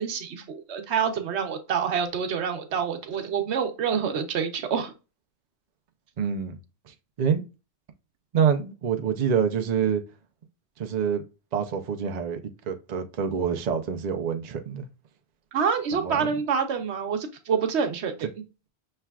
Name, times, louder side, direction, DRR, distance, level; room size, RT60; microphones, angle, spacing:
voice 1, 0.0-4.9 15.5-18.3, right 6 dB, 90° right, 1.1 m, -27 dB
voice 2, 6.2-6.6 6.9-7.4 8.3-10.0 10.8-11.2 11.5-12.4 12.6-14.9 15.9-16.3, right 7 dB, 45° right, 0.6 m, -26 dB
5.7 x 3.3 x 2.3 m
omnidirectional pair, 1.1 m